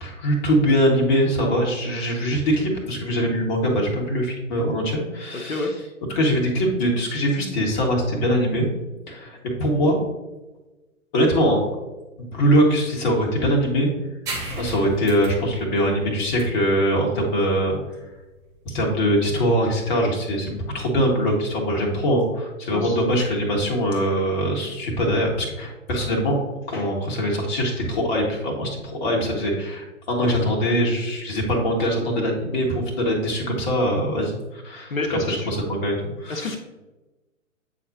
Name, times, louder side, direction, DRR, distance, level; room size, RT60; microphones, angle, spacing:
voice 1, 0.0-5.7 6.1-8.7 9.1-10.0 11.1-11.6 12.2-13.9 14.5-17.8 18.6-26.4 26.7-36.6, equal, 35° left, 0 dB, 1.6 m, -22 dB
sound 1, 14.3-21.4, right 2 dB, 10° right, 0.5 m, -38 dB
voice 2, 34.9-35.5 36.3-36.6, left 3 dB, 80° left, 2 dB, 1.0 m, -28 dB
8.5 x 4.1 x 2.8 m, 1.1 s
figure-of-eight pair, 120°, 40 cm